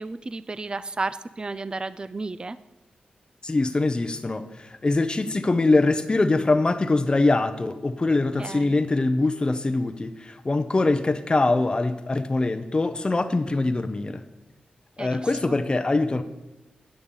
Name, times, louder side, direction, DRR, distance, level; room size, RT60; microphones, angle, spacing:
voice 1, 0.0-2.6 8.4-8.8 15.0-15.5, right 3 dB, 30° right, 15 dB, 0.4 m, -33 dB
voice 2, 3.4-14.2 15.0-16.2, left 2 dB, 30° left, 8 dB, 0.6 m, -23 dB
8.8 x 6.6 x 5.4 m, 1.0 s
cardioid pair, 65°, 3 cm